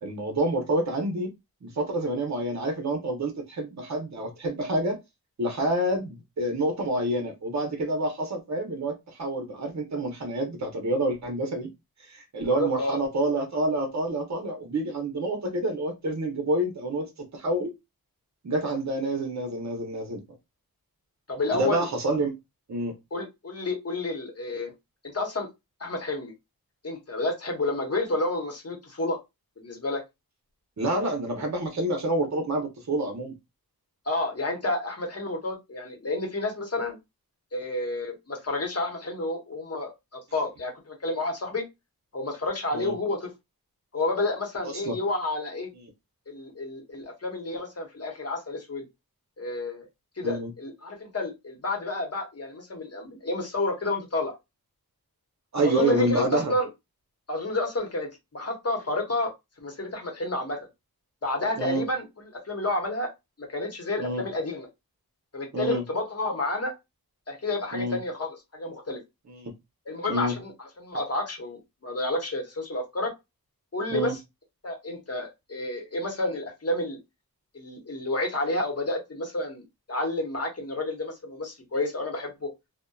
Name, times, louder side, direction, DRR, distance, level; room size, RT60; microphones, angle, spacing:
voice 1, 0.0-1.3 1.6-5.0 5.4-11.7 12.1-17.7 18.4-20.2 21.5-22.4 22.7-22.9 30.8-33.3 42.7-42.9 44.6-45.0 50.2-50.5 55.5-56.5 61.6-61.8 64.0-64.2 65.5-65.8 67.7-68.0 69.3-69.5 70.1-70.3 73.9-74.1, right 1 dB, 45° right, 0.8 m, -28 dB
voice 2, 12.6-13.0 21.3-21.8 23.1-24.7 25.1-25.5 25.8-26.3 26.8-29.2 29.6-30.0 34.1-37.0 37.5-41.7 42.1-43.3 43.9-45.7 46.3-48.8 49.4-49.8 50.2-54.3 55.6-56.7 57.3-59.3 59.6-60.7 61.2-63.1 63.4-64.7 65.3-66.7 67.3-69.0 69.9-73.1 73.7-74.2 74.6-77.0 77.5-79.6 79.9-82.5, left 2 dB, 40° left, 0.9 m, -30 dB
2.6 x 2.1 x 2.2 m
wide cardioid pair, 75°, 37 cm